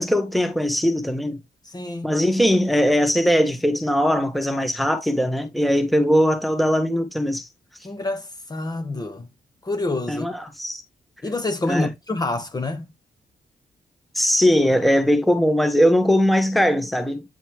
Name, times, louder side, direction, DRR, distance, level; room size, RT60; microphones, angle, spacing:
voice 1, 0.0-1.4 2.0-7.5 10.1-10.8 11.7-11.9 14.1-17.2, equal, ahead, 1.6 m, -20 dB
voice 2, 1.7-2.1 7.8-9.3 9.6-10.3 11.2-12.8, left 2 dB, 25° left, 1.5 m, -27 dB
9.4 x 4.0 x 3.3 m
cardioid pair, 80°, 15 cm